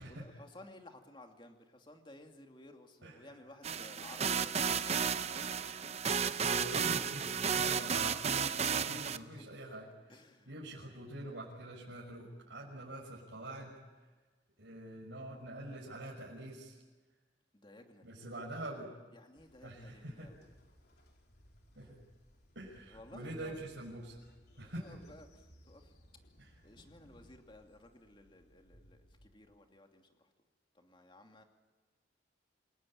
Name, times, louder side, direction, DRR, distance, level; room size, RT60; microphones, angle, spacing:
voice 1, 0.0-5.6 8.7-9.4 10.1-10.5 17.5-18.4 19.1-20.5 20.9-21.1 21.7-21.9 22.9-23.6 24.5-26.2 26.6-30.3 30.7-31.4, left 1 dB, 25° left, 4 dB, 2.7 m, -56 dB
sound 1, 3.6-9.2, right 6 dB, 35° right, 0.7 m, -33 dB
voice 2, 6.2-8.2 8.7-10.1 10.5-13.8 14.6-16.8 18.0-18.9 19.6-20.3 21.7-22.0 22.5-24.2 24.6-24.9 26.4-26.5, right 1 dB, 75° right, -6 dB, 6.5 m, -45 dB
Train, 19.3-29.3, equal, 60° left, 3.9 m, -63 dB
28.0 x 20.5 x 9.1 m, 1.3 s
head